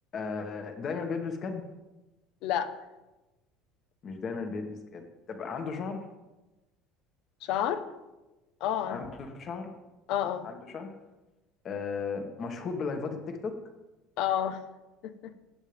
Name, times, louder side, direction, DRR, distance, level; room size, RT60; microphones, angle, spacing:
voice 1, 0.1-1.6 4.0-6.1 8.9-9.7 10.4-10.9 11.6-13.6, left 5 dB, 40° left, 5 dB, 1.8 m, -35 dB
voice 2, 7.4-7.8 8.6-9.0 10.1-10.4 14.2-14.6 15.0-15.4, left 10 dB, 65° left, 11 dB, 1.0 m, -29 dB
18.0 x 7.5 x 3.5 m, 1.1 s
supercardioid pair, 110°, 0 cm